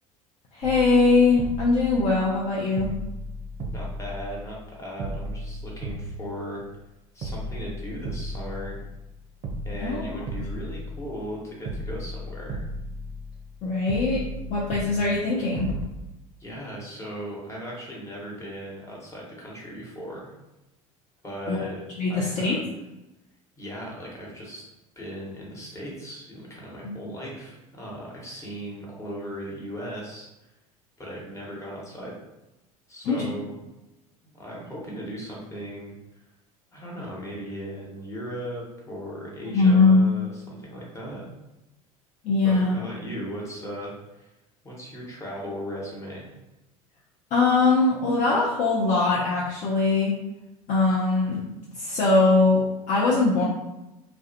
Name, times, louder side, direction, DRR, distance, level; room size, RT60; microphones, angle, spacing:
voice 1, 0.5-2.9 9.8-10.2 13.6-15.7 21.5-21.6 22.0-22.6 26.8-26.9 33.0-33.3 39.5-40.0 42.2-42.8 47.3-50.1 50.7-51.4 51.8-53.4, left 3 dB, 40° left, -4 dB, 0.5 m, -21 dB
sound 1, 0.6-2.5 2.8-4.7 5.0-6.8 7.2-9.1 9.4-11.3 11.6-13.6 13.9-15.8, equal, 45° right, 0.5 m, -35 dB
voice 2, 3.7-6.6 7.1-8.8 9.6-12.7 16.4-20.3 21.2-21.8 22.1-22.6 23.6-24.6 25.0-30.5 31.0-32.1 32.9-33.5 34.2-35.9 36.7-41.3 42.4-43.9 44.2-44.3 44.6-46.3, equal, 15° left, -5 dB, 1.0 m, -37 dB
2.3 x 2.1 x 2.7 m, 0.97 s
figure-of-eight pair, 70°, 19 cm